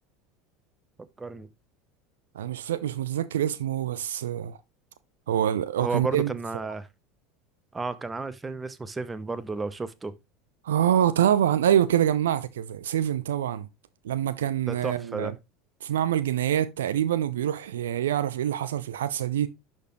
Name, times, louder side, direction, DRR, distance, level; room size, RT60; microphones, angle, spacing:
voice 1, 1.2-1.5 5.8-6.9 7.7-10.1 14.7-15.3, right 3 dB, 15° right, 0.8 m, -32 dB
voice 2, 2.3-4.6 5.3-6.3 10.6-13.7 14.0-15.3 15.8-19.5, right 10 dB, 70° right, 0.5 m, -25 dB
11.5 x 4.5 x 3.1 m
figure-of-eight pair, 70°, 0 cm